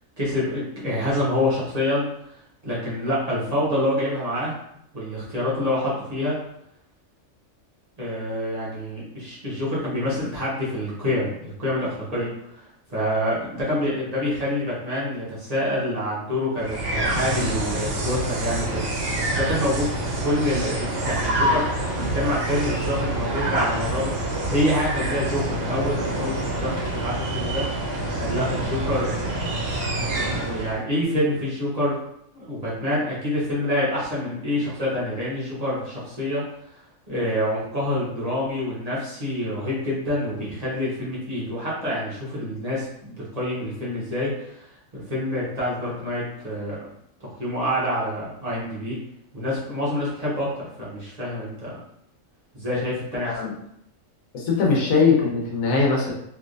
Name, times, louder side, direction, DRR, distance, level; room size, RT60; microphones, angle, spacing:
voice 1, 0.2-2.1 2.6-4.5 4.9-6.4 8.0-12.6 12.9-27.6 28.2-29.3 30.4-32.0 32.3-36.4 37.1-44.7 44.9-46.8 47.4-49.0 49.3-50.5 50.8-51.7 52.5-53.4, left 1 dB, 30° right, -8 dB, 1.0 m, -27 dB
sound 1, 16.6-30.8, right 1 dB, 70° right, 1.0 m, -26 dB
voice 2, 54.3-56.1, left 4 dB, 85° left, -2 dB, 1.2 m, -21 dB
3.2 x 2.8 x 2.5 m, 0.75 s
omnidirectional pair, 1.4 m